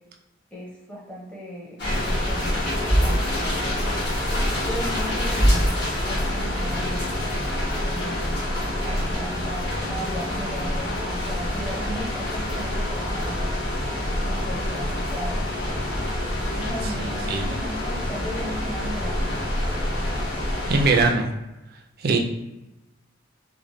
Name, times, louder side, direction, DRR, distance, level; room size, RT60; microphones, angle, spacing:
voice 1, 0.5-4.1 4.6-5.7 6.0-7.1 7.8-13.4 14.2-15.4 16.5-19.5, equal, 5° left, -4 dB, 0.7 m, -37 dB
sound 1, 1.8-21.1, left 1 dB, 60° left, 1.2 m, -26 dB
voice 2, 16.8-17.5 20.7-21.3 22.0-22.2, right 4 dB, 50° right, 3 dB, 0.4 m, -22 dB
3.2 x 2.1 x 2.6 m, 0.96 s
head